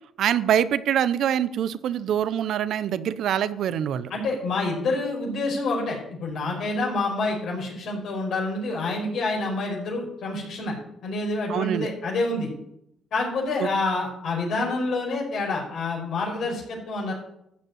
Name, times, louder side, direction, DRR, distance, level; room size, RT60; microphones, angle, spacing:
voice 1, 0.2-4.1 11.5-11.9 13.6-13.7, right 9 dB, 75° right, 16 dB, 0.6 m, -24 dB
voice 2, 4.1-10.7 11.0-12.5 13.1-17.1, left 2 dB, 70° left, -1 dB, 4.9 m, -27 dB
13.5 x 5.3 x 9.1 m, 0.78 s
cardioid pair, 90°, 0 cm